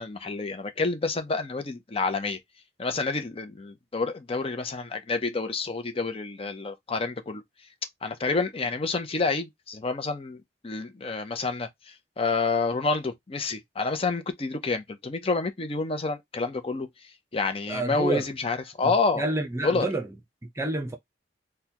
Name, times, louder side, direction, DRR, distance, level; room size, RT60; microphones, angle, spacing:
voice 1, 0.0-2.4 2.8-7.4 8.0-16.9 17.3-19.2 19.6-19.9, left 3 dB, 35° left, 0.6 m, -28 dB
voice 2, 17.7-18.2 18.8-20.1 20.6-21.0, right 2 dB, 15° right, 0.7 m, -29 dB
4.0 x 2.3 x 2.8 m
head